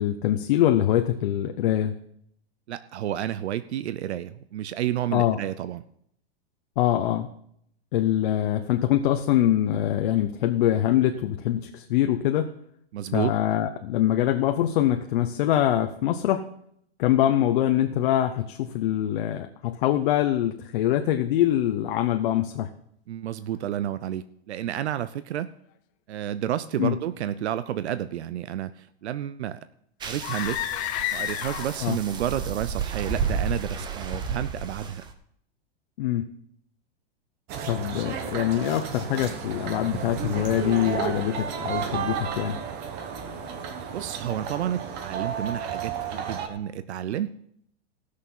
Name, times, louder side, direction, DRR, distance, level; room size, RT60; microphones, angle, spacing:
voice 1, 0.0-1.9 5.1-5.4 6.8-7.3 7.9-12.5 13.1-16.5 17.0-22.7 26.8-27.0 31.8-32.0 36.0-36.3 37.6-42.6, left 12 dB, 50° left, 6 dB, 0.8 m, -24 dB
voice 2, 2.7-5.8 12.9-13.3 23.1-25.5 26.1-29.7 30.0-30.6 31.1-35.0 43.9-47.3, right 11 dB, 85° right, 13 dB, 0.7 m, -30 dB
sound 1, 30.0-35.1, right 5 dB, 15° right, 0.7 m, -32 dB
sound 2, 30.2-32.0, left 14 dB, 25° left, 0.5 m, -30 dB
sound 3, 37.5-46.5, right 7 dB, 30° right, 1.2 m, -32 dB
17.0 x 6.6 x 5.5 m, 0.70 s
supercardioid pair, 155°, 32 cm